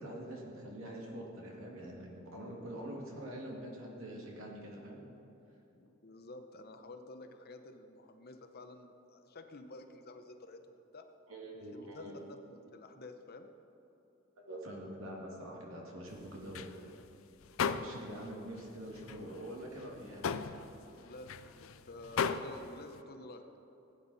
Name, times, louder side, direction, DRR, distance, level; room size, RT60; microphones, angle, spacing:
voice 1, 0.0-5.0 11.3-12.1 14.4-16.7 17.6-20.5, right 1 dB, 80° right, -1 dB, 2.1 m, -45 dB
voice 2, 5.7-11.0 11.5-13.5 20.9-23.5, left 2 dB, 50° left, 6 dB, 0.8 m, -51 dB
sound 1, 16.1-18.3 18.6-23.0, left 6 dB, 75° left, 0.5 m, -38 dB
16.5 x 9.2 x 4.1 m, 3.0 s
head